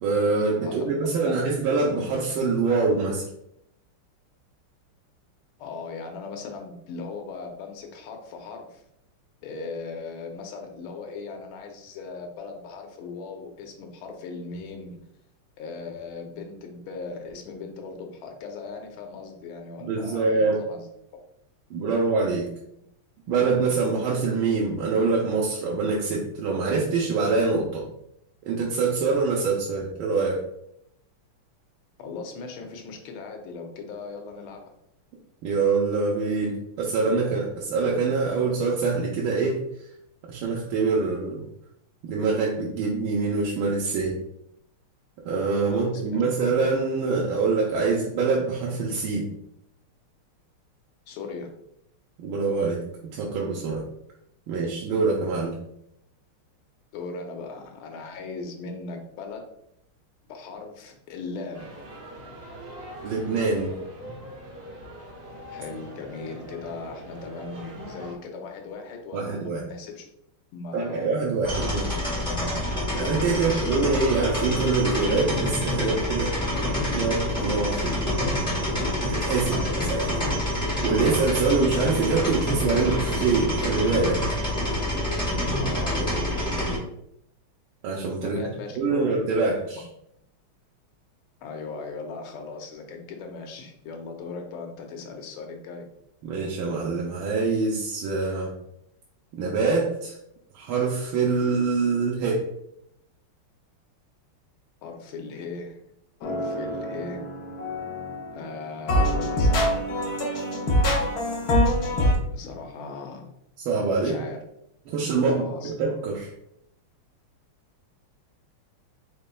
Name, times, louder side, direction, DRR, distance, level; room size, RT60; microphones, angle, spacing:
voice 1, 0.0-3.2 19.8-20.6 21.7-22.5 23.3-27.8 28.5-30.4 35.4-39.6 40.3-41.4 42.0-44.2 45.2-49.3 52.2-52.8 53.1-53.8 54.5-55.5 63.0-63.7 69.1-69.6 70.7-72.0 72.9-76.3 76.9-78.0 79.0-79.5 79.9-80.1 80.8-84.2 87.8-88.4 88.8-89.9 96.2-98.5 99.3-100.2 100.5-102.4 113.6-114.2 114.9-116.3, right 4 dB, 75° right, -3 dB, 1.4 m, -25 dB
voice 2, 0.6-0.9 1.2-1.6 5.6-8.8 9.4-15.0 15.6-20.8 32.0-34.6 45.7-46.2 51.1-51.5 56.9-59.4 60.3-61.7 65.5-70.0 70.5-71.1 71.7-71.8 73.2-73.8 79.4-80.4 85.6-86.6 88.2-89.1 89.7-89.8 91.4-95.8 104.8-105.8 106.2-107.2 108.3-110.1 111.9-113.3 114.0-114.4 115.3-115.7, left 4 dB, 75° left, 3 dB, 1.6 m, -38 dB
sound 1, 61.5-68.2, equal, 55° right, 1.0 m, -41 dB
sound 2, 71.4-86.8, left 1 dB, 5° left, 0.9 m, -27 dB
sound 3, 106.2-108.5 108.9-112.1, equal, 60° left, 1.1 m, -24 dB
5.3 x 3.9 x 2.3 m, 0.76 s
omnidirectional pair, 2.4 m